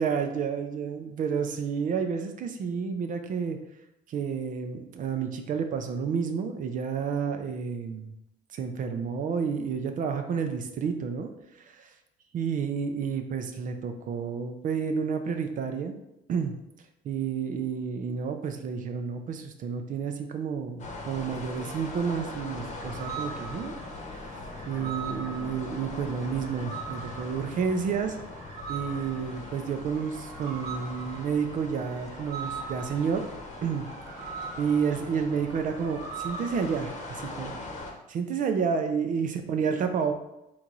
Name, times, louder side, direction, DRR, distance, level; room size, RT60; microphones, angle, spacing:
voice 1, 0.0-3.6 4.1-8.1 8.5-11.3 11.6-11.9 12.3-16.0 16.3-16.5 17.0-23.8 24.1-24.3 24.7-28.2 28.7-33.2 33.6-33.9 34.6-37.6 38.1-40.1, right 6 dB, 50° right, 7 dB, 0.5 m, -30 dB
sound 1, 20.8-37.9, left 2 dB, 45° left, 0.9 m, -41 dB
sound 2, 22.1-37.4, right 5 dB, 75° right, 1.0 m, -42 dB
4.1 x 3.1 x 3.8 m, 0.87 s
cardioid pair, 110°, 17 cm